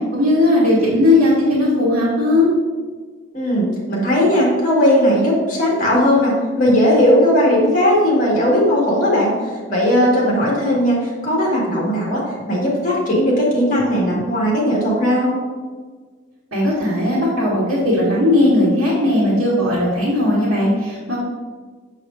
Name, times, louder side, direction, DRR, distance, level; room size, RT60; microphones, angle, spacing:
voice 1, 0.1-2.5 16.5-21.2, left 1 dB, 75° right, -8 dB, 1.5 m, -17 dB
voice 2, 3.3-9.3 9.7-15.4, equal, 35° left, -4 dB, 1.8 m, -17 dB
6.4 x 6.2 x 2.6 m, 1.5 s
head